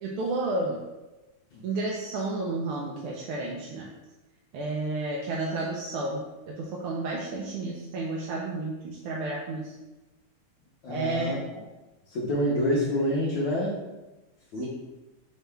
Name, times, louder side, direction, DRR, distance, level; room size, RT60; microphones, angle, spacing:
voice 1, 0.0-0.8 1.6-3.9 4.5-6.2 6.5-9.7 10.9-11.3 14.6-14.7, right 2 dB, 85° right, -3 dB, 1.5 m, -31 dB
voice 2, 10.8-11.4 12.1-13.8 14.5-14.7, equal, 70° left, -6 dB, 1.4 m, -27 dB
5.5 x 2.8 x 3.3 m, 1.1 s
omnidirectional pair, 2.4 m